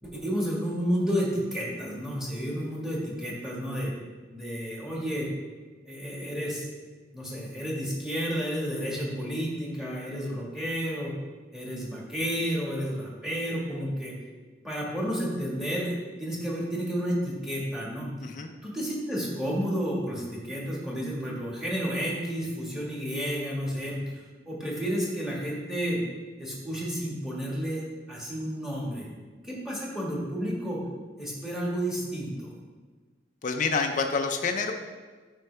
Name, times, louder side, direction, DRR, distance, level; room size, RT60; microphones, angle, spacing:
voice 1, 0.0-3.9 4.3-5.3 5.8-6.7 7.1-11.1 11.5-14.1 14.6-18.1 18.6-26.0 26.4-27.8 28.1-29.1 29.4-30.8 31.2-32.5, equal, 5° right, -4 dB, 1.6 m, -31 dB
voice 2, 33.4-34.7, left 4 dB, 45° left, 4 dB, 0.5 m, -27 dB
9.0 x 5.4 x 3.3 m, 1.4 s
head